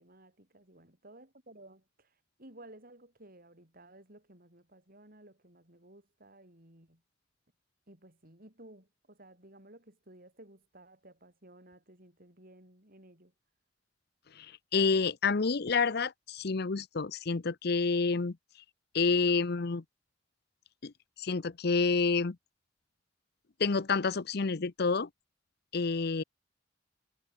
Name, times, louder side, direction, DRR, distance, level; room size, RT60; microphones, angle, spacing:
voice 1, 0.0-7.0 7.9-13.3, right 1 dB, 50° right, 7.9 m, -56 dB
voice 2, 14.3-18.4 18.9-19.8 20.8-20.9 21.2-22.4 23.6-25.1 25.7-26.2, left 4 dB, 60° left, 0.7 m, -29 dB
head